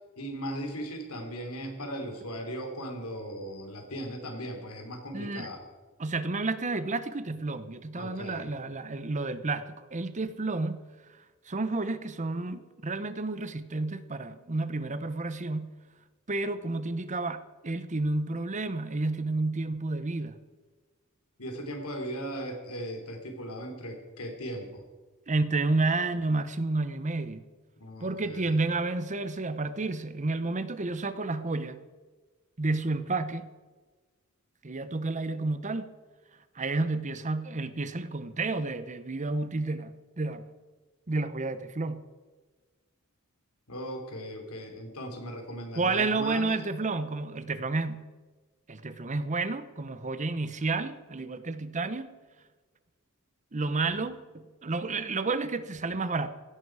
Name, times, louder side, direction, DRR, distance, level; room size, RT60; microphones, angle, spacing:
voice 1, 0.2-5.6 8.0-8.5 21.4-24.8 27.8-28.5 43.7-46.5, equal, 80° left, 4 dB, 3.4 m, -38 dB
voice 2, 5.1-5.5 6.0-10.8 11.5-15.7 16.3-20.3 25.3-27.5 28.0-31.8 32.6-33.5 34.6-35.9 36.5-40.5 41.1-42.0 45.8-48.0 48.7-52.1 53.5-54.2 54.6-56.3, right 3 dB, 35° right, 12 dB, 0.8 m, -30 dB
17.0 x 15.0 x 4.8 m, 1.3 s
head